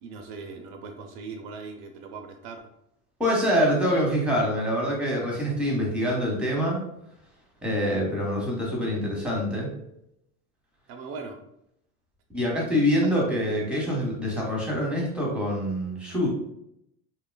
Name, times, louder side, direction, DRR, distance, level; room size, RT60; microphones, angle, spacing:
voice 1, 0.0-2.6 10.9-11.4 13.0-13.1, right 4 dB, 65° right, 4 dB, 0.5 m, -39 dB
voice 2, 3.2-6.8 7.6-9.7 12.3-16.3, equal, 5° right, -3 dB, 0.9 m, -25 dB
2.8 x 2.3 x 2.2 m, 0.79 s
supercardioid pair, 90°, 39 cm